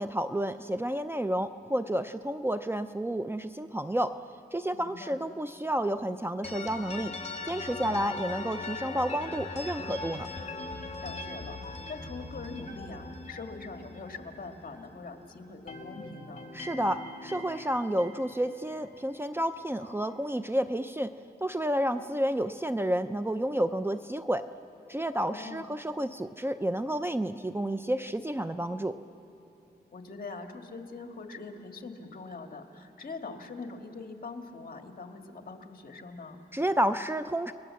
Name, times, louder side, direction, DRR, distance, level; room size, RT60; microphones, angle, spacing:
voice 1, 0.0-4.2 4.5-7.1 7.4-10.3 16.5-21.1 21.4-24.4 24.9-29.0 36.5-37.5, right 1 dB, 15° right, 10 dB, 0.5 m, -30 dB
voice 2, 4.7-5.2 11.0-16.5 25.3-25.7 29.9-36.4, left 3 dB, 55° left, 4 dB, 2.0 m, -43 dB
sound 1, 6.4-15.2 15.4-19.6, left 3 dB, 40° left, 2.2 m, -41 dB
30.0 x 20.0 x 7.7 m, 2.9 s
wide cardioid pair, 95°, 17 cm